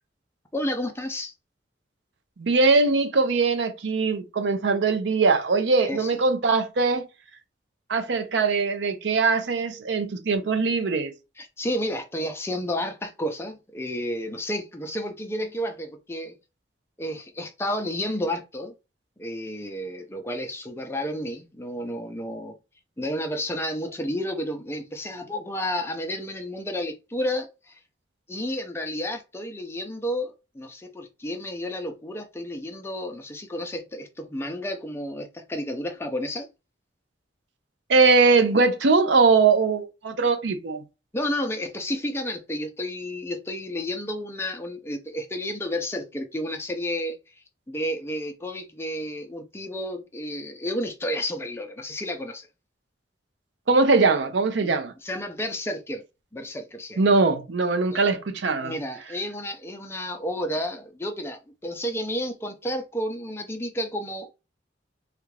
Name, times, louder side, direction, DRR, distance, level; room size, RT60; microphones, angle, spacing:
voice 1, 0.5-1.3 5.8-6.1 11.4-16.3 17.0-18.7 19.2-22.5 23.0-27.8 28.3-36.5 41.1-47.2 47.7-52.5 54.6-54.7 55.0-56.0 56.3-57.0 57.9-58.0 58.6-64.3, left 1 dB, 15° left, 0.5 m, -31 dB
voice 2, 2.4-7.0 7.9-11.1 37.9-40.8 53.7-54.9 57.0-58.7, right 4 dB, 75° right, 0.5 m, -21 dB
3.3 x 2.4 x 3.2 m
head